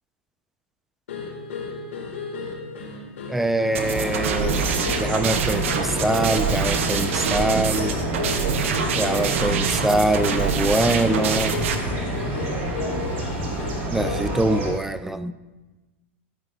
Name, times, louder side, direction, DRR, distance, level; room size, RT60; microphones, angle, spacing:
sound 1, 1.1-14.4, left 4 dB, 85° left, 3.2 m, -34 dB
voice 1, 3.3-4.7 5.0-7.9 9.0-11.6 13.9-15.3, right 1 dB, 5° right, 12 dB, 0.3 m, -24 dB
sound 2, 3.7-14.7, right 1 dB, 35° right, 2.9 m, -28 dB
sound 3, 3.7-11.8, right 6 dB, 75° right, 1.2 m, -26 dB
14.0 x 9.0 x 2.7 m, 1.2 s
supercardioid pair, 140°, 7 cm